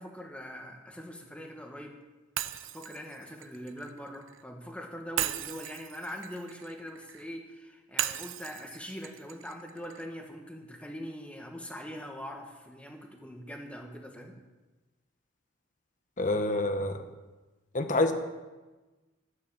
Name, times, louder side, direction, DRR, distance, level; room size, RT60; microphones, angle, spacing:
voice 1, 0.0-2.0 2.7-14.3, equal, 5° left, 2 dB, 1.6 m, -42 dB
Shatter, 2.4-4.4 5.2-7.3 8.0-10.1, right 11 dB, 85° right, 0.7 m, -37 dB
voice 2, 16.2-17.0 17.7-18.1, left 2 dB, 40° left, 7 dB, 1.3 m, -27 dB
13.0 x 9.8 x 7.1 m, 1.2 s
head